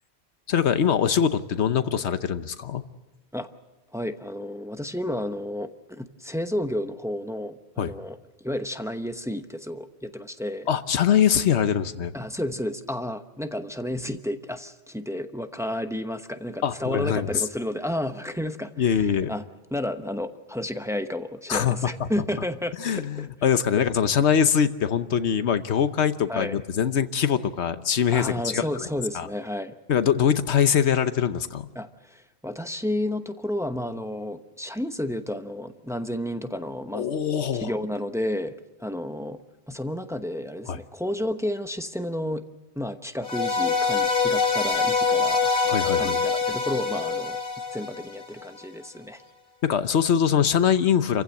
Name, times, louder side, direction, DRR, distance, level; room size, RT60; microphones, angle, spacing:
voice 1, 0.5-2.8 7.8-7.9 10.7-12.1 16.6-17.4 18.8-19.3 21.5-21.8 22.8-28.9 29.1-29.3 29.9-31.7 36.9-37.7 40.7-40.8 45.6-46.2 49.6-51.2, left 8 dB, 85° left, 11 dB, 1.2 m, -23 dB
voice 2, 3.9-10.7 12.1-19.4 19.7-23.3 26.3-26.6 28.1-29.8 31.7-37.1 37.5-38.5 38.8-39.4 39.7-42.4 42.8-45.6 45.9-47.4 47.7-49.2, left 1 dB, 5° right, 8 dB, 0.8 m, -31 dB
sound 1, 43.2-48.5, left 5 dB, 45° left, 1.7 m, -24 dB
28.5 x 15.5 x 7.8 m, 1.1 s
omnidirectional pair, 1.1 m